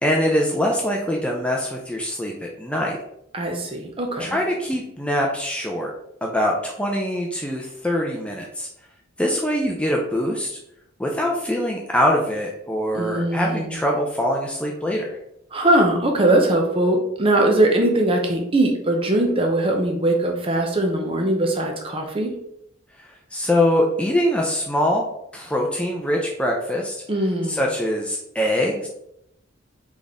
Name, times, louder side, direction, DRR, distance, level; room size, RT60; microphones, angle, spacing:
voice 1, 0.0-3.0 4.2-5.9 6.2-8.7 9.2-10.6 11.0-15.2 23.0-25.1 25.3-27.0 27.5-28.9, equal, 5° left, -1 dB, 0.4 m, -23 dB
voice 2, 3.3-4.4 12.9-13.8 15.5-22.3 27.1-27.6, right 1 dB, 25° right, 2 dB, 0.7 m, -21 dB
4.1 x 3.5 x 3.6 m, 0.78 s
head